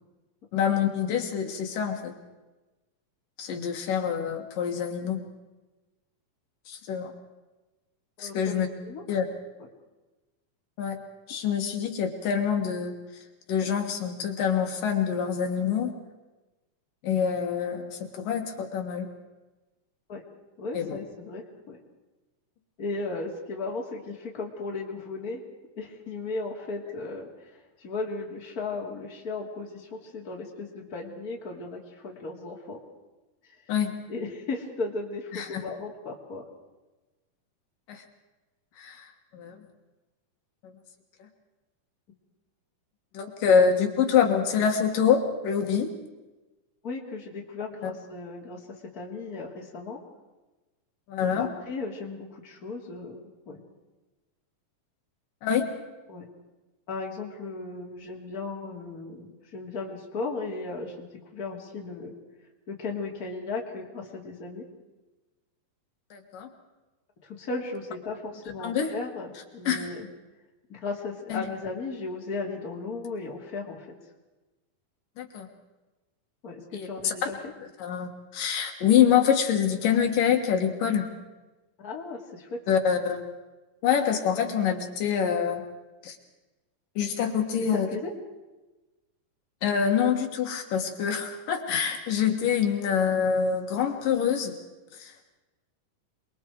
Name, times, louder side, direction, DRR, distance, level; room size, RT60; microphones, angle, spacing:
voice 1, 0.5-2.1 3.4-5.2 6.7-7.1 8.2-8.7 9.1-9.3 10.8-11.0 11.3-13.2 13.5-15.9 17.0-19.1 20.7-21.0 33.7-33.9 35.3-35.6 37.9-38.0 38.8-39.6 40.6-40.7 41.2-41.3 43.1-45.9 47.8-47.9 51.1-51.5 55.4-55.7 66.1-66.5 68.6-68.9 69.6-69.9 71.3-71.4 75.2-75.5 76.7-77.3 77.8-81.1 82.7-83.2 83.8-85.6 86.0-86.2 87.0-87.9 89.6-94.5 94.9-95.1, left 7 dB, 75° left, 3 dB, 3.3 m, -26 dB
voice 2, 8.2-9.0 20.1-20.2 20.6-21.8 22.8-25.4 25.8-32.8 34.1-36.5 46.8-50.0 51.2-53.6 56.1-56.3 56.9-61.1 61.3-62.1 62.7-64.6 67.2-70.1 70.7-73.9 76.4-77.5 81.8-82.6 87.5-88.1, left 3 dB, 30° left, -1 dB, 2.8 m, -36 dB
27.5 x 22.0 x 4.7 m, 1.1 s
omnidirectional pair, 3.8 m